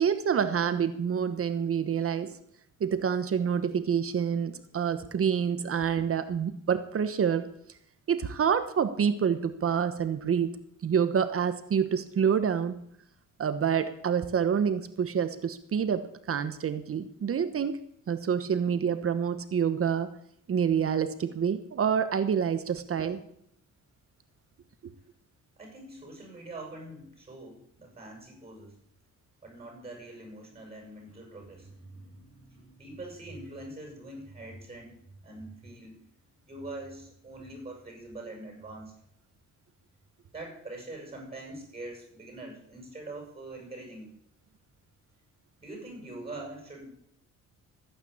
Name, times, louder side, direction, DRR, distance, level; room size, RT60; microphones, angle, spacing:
voice 1, 0.0-2.3 2.8-7.5 8.1-10.5 10.8-12.8 13.4-20.1 20.5-23.2, right 7 dB, 45° right, 11 dB, 1.2 m, -27 dB
voice 2, 25.6-28.8 29.4-36.1 36.5-38.9 40.3-44.1 45.6-46.9, right 2 dB, 20° right, 1 dB, 7.7 m, -44 dB
14.5 x 9.2 x 8.6 m, 0.70 s
cardioid pair, 90°, 30 cm